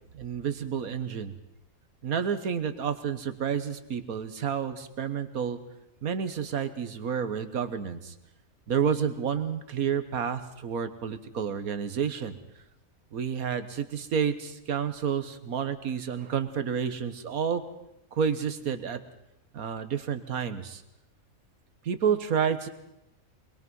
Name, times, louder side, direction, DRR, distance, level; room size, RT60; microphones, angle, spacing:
voice 1, 0.1-1.4 2.0-5.6 6.0-8.1 8.7-12.4 13.1-17.6 18.1-19.0 19.5-20.8 21.8-22.7, right 7 dB, 90° right, 11 dB, 1.7 m, -30 dB
23.5 x 21.5 x 5.5 m, 0.88 s
omnidirectional pair, 1.5 m